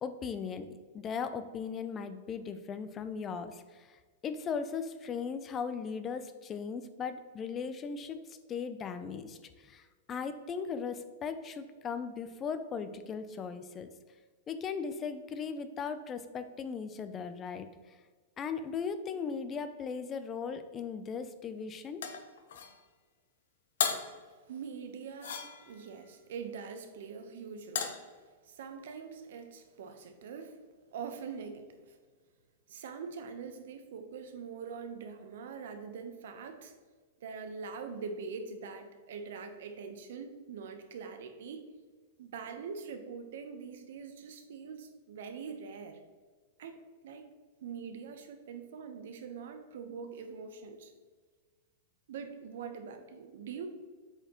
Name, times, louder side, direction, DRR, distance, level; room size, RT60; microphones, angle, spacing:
voice 1, 0.0-13.9 14.5-18.0 18.4-22.1, left 6 dB, 20° left, 11 dB, 0.4 m, -38 dB
sound 1, 22.0-22.8 23.8-24.2 25.2-25.9 27.8-28.1, left 7 dB, 75° left, 0.8 m, -35 dB
voice 2, 24.5-28.0 28.4-30.6 30.9-32.0 32.7-36.7 37.2-41.6 42.2-46.0 46.6-46.8 47.0-47.3 47.6-50.9 52.1-53.7, right 5 dB, 65° right, 6 dB, 0.9 m, -43 dB
7.8 x 4.5 x 3.0 m, 1.5 s
supercardioid pair, 165°, 0 cm